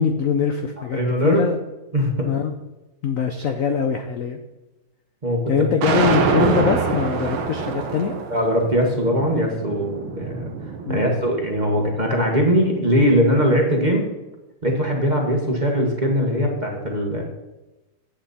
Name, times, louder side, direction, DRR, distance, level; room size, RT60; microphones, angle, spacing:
voice 1, 0.0-1.0 1.2-1.6 2.3-2.5 3.0-4.4 5.5-8.1 10.9-11.0, left 7 dB, 70° left, 6 dB, 0.7 m, -22 dB
voice 2, 0.9-1.5 1.9-2.3 5.2-5.7 8.3-10.5 10.9-14.1 14.6-17.2, equal, 25° right, 1 dB, 1.2 m, -20 dB
sound 1, 5.8-12.0, right 5 dB, 90° right, 1.9 m, -25 dB
10.0 x 7.9 x 4.2 m, 1.0 s
omnidirectional pair, 2.2 m